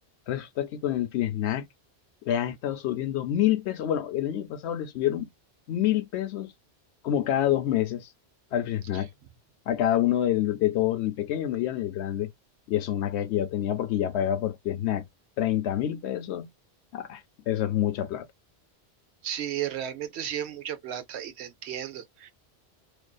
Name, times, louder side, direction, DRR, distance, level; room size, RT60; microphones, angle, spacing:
voice 1, 0.3-1.6 2.2-5.3 5.7-6.5 7.0-8.1 8.5-9.1 9.7-12.3 12.7-15.0 15.4-16.5 16.9-18.3, left 12 dB, 90° left, 0.9 m, -27 dB
voice 2, 19.2-22.3, right 10 dB, 85° right, 0.9 m, -34 dB
2.5 x 2.4 x 2.2 m
omnidirectional pair, 1.1 m